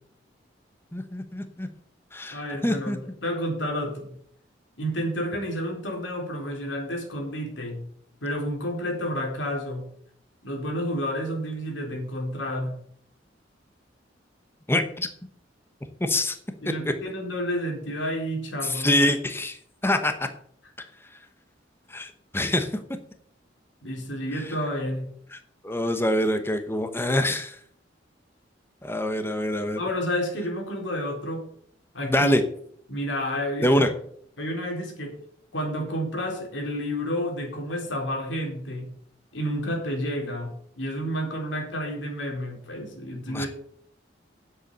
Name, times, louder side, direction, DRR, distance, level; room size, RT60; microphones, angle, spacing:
voice 1, 0.9-1.7 2.1-3.0 14.7-15.1 16.0-16.4 18.6-19.6 19.8-20.1 21.9-22.7 24.4-24.5 25.3-25.4 25.6-27.6 28.8-29.8 32.1-32.4 33.6-33.9 43.3-43.5, left 1 dB, 15° left, 7 dB, 1.0 m, -25 dB
voice 2, 2.3-4.1 4.8-7.8 8.2-9.8 10.4-12.8 16.6-18.9 23.8-25.0 29.8-31.5 31.9-32.4 32.9-33.9 34.4-35.2 35.5-38.9 39.3-43.5, equal, 90° left, 1 dB, 4.2 m, -30 dB
9.9 x 7.8 x 6.8 m, 0.62 s
head